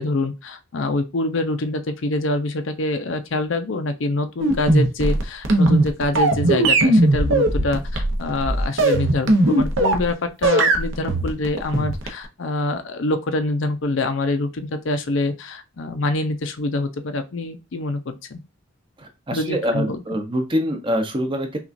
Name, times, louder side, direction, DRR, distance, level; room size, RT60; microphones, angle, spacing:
voice 1, 0.0-18.4 19.3-20.0, left 2 dB, 70° left, 8 dB, 0.6 m, -25 dB
sound 1, 4.4-10.1 10.4-12.3, right 2 dB, 70° right, 0.9 m, -18 dB
voice 2, 19.0-21.6, equal, 25° right, 5 dB, 0.7 m, -25 dB
5.8 x 2.4 x 2.5 m, 0.27 s
head